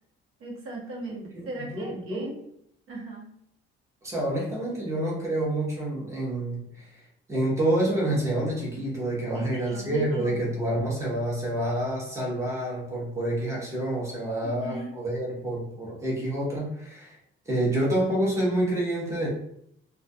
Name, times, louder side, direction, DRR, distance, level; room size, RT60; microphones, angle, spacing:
voice 1, 0.4-2.4 2.9-3.3 8.8-8.9 9.3-10.6 14.4-15.0, right 2 dB, 90° right, -4 dB, 0.9 m, -38 dB
voice 2, 1.1-2.4 4.0-6.9 7.3-17.1 17.5-19.3, right 1 dB, 15° right, -4 dB, 0.7 m, -28 dB
2.3 x 2.2 x 2.6 m, 0.72 s
cardioid pair, 165°, 21 cm